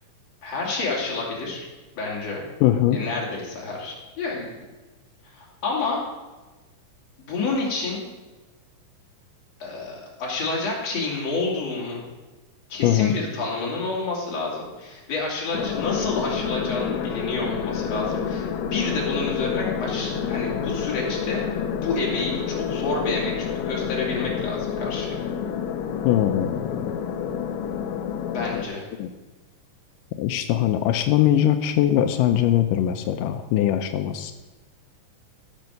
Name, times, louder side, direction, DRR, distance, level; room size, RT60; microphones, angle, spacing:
voice 1, 0.4-1.7 2.0-2.4 2.9-4.6 5.2-6.1 7.2-8.1 9.6-12.0 12.7-25.2 28.3-28.8, left 3 dB, 50° left, -3 dB, 3.9 m, -29 dB
voice 2, 2.6-3.0 12.8-13.2 26.0-26.9 29.0-29.1 30.2-34.3, left 11 dB, 90° left, 7 dB, 2.2 m, -21 dB
sound 1, 15.5-28.6, left 7 dB, 70° left, 1.8 m, -29 dB
15.5 x 6.5 x 6.5 m, 1.2 s
omnidirectional pair, 3.8 m